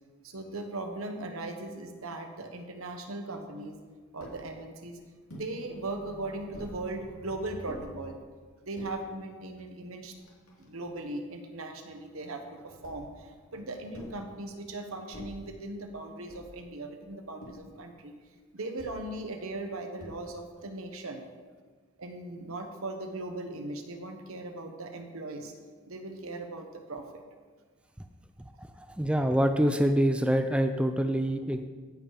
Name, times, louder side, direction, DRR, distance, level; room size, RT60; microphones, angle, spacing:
voice 1, 0.2-3.8 4.1-5.0 5.3-8.2 8.6-10.1 10.6-18.1 18.5-21.2 22.0-25.5 25.9-27.2, right 2 dB, 75° right, 5 dB, 1.2 m, -38 dB
sound 1, 4.2-4.4 5.3-5.5 6.5-6.8 7.7-7.8 8.6-8.9 9.7-9.8 10.0-11.0 12.8-13.2 13.9-14.3 15.1-15.5 16.3-16.6 17.4-17.7 18.8-19.0 20.0-20.4, left 1 dB, 80° left, 2.7 m, -47 dB
voice 2, 28.6-31.6, equal, 5° right, 6 dB, 0.4 m, -26 dB
16.0 x 5.6 x 5.0 m, 1.5 s
head